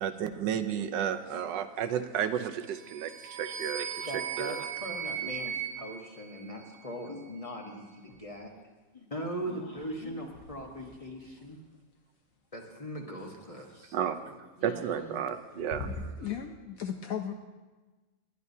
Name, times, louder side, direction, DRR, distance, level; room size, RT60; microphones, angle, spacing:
voice 1, 0.0-4.7 5.2-5.3 13.9-16.1, right 9 dB, 80° right, 9 dB, 1.4 m, -33 dB
sound 1, 2.7-7.0, right 8 dB, 65° right, 1.2 m, -38 dB
voice 2, 4.0-8.5 8.9-11.6 12.5-14.0 14.6-15.2 15.5-16.0, equal, 25° left, 1 dB, 1.0 m, -40 dB
sound 2, 8.0-8.7 9.0-13.1 14.7-15.3 15.6-16.4, left 3 dB, 90° left, 2.1 m, -46 dB
voice 3, 16.2-17.3, left 9 dB, 65° left, 6 dB, 0.9 m, -35 dB
20.0 x 11.0 x 2.7 m, 1.3 s
omnidirectional pair, 1.9 m